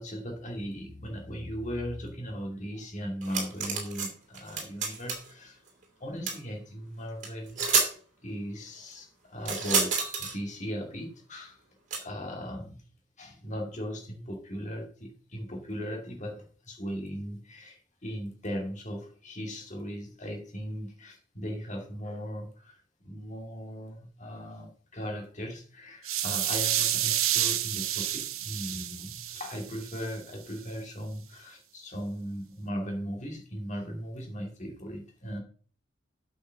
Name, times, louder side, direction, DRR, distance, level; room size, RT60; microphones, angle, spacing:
voice 1, 0.0-5.6 6.0-7.6 8.2-11.6 12.0-12.8 13.2-35.4, equal, 35° left, 2 dB, 2.3 m, -38 dB
sound 1, 3.2-4.1 4.3-5.3 6.3-6.4 7.2-7.3 7.6-7.9 9.4-10.3 11.9-12.0, right 5 dB, 35° right, 2.8 m, -28 dB
sound 2, 26.0-30.1, right 11 dB, 90° right, 1.0 m, -29 dB
8.4 x 5.4 x 6.8 m, 0.43 s
head